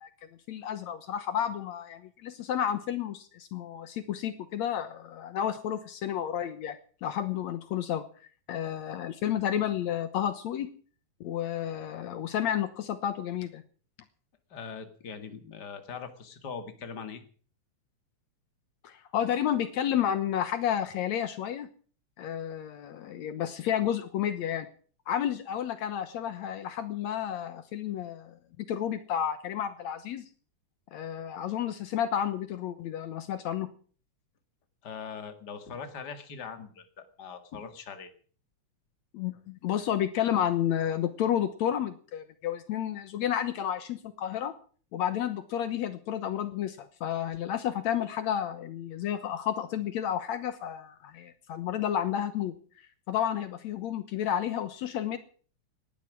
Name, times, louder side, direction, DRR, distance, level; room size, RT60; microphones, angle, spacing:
voice 1, 0.5-6.8 7.0-8.0 8.5-10.7 11.2-13.6 18.8-21.7 22.2-24.7 25.1-30.3 30.9-33.7 39.1-44.5 44.9-52.5 53.1-55.2, left 10 dB, 75° left, 11 dB, 2.3 m, -31 dB
voice 2, 14.5-17.2 34.8-38.1, left 6 dB, 35° left, 8 dB, 2.4 m, -41 dB
19.5 x 12.0 x 6.2 m, 0.44 s
omnidirectional pair, 3.3 m